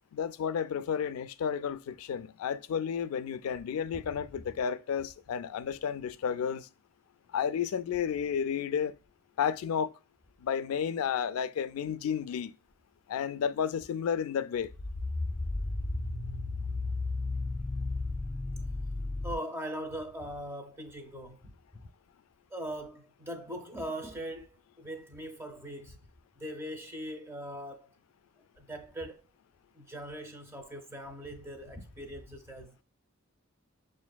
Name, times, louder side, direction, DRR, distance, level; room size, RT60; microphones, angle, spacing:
voice 1, 0.1-6.7 7.3-8.9 9.4-9.9 10.4-12.5 13.1-14.7, left 7 dB, 90° left, 0.3 m, -32 dB
sound 1, 14.6-19.3, left 2 dB, 25° left, 0.5 m, -34 dB
voice 2, 19.2-21.8 22.5-26.0 26.4-27.9 28.6-29.2 29.7-32.7, equal, 10° right, 0.6 m, -41 dB
7.0 x 2.5 x 2.2 m
head